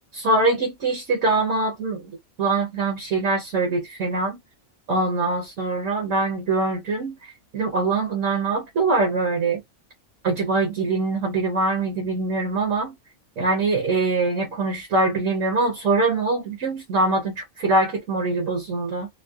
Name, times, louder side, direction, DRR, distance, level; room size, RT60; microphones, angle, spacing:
voice 1, 0.1-2.1 2.4-4.4 4.9-7.2 7.5-9.6 10.2-12.9 13.4-19.1, right 3 dB, 65° right, 1.3 m, -23 dB
3.5 x 2.0 x 2.4 m
omnidirectional pair, 1.4 m